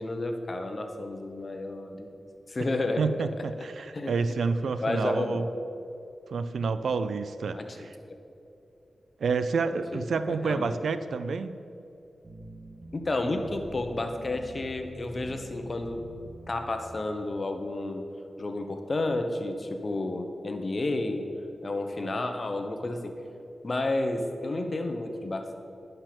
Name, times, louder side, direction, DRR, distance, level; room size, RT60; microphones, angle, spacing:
voice 1, 0.0-2.2 2.5-3.0 3.9-4.1 4.6-5.4 7.5-7.7 8.0-8.2 9.9-10.7 12.9-16.0 16.5-18.1 18.4-21.3 21.6-23.1 23.6-25.6, left 2 dB, 45° left, 6 dB, 1.1 m, -31 dB
voice 2, 3.0-5.5 6.3-7.9 9.2-11.6, right 4 dB, 85° right, 12 dB, 0.4 m, -29 dB
sound 1, 12.2-16.8, right 1 dB, 45° right, 1.9 m, -45 dB
10.5 x 6.7 x 6.0 m, 2.8 s
cardioid pair, 60°, 0 cm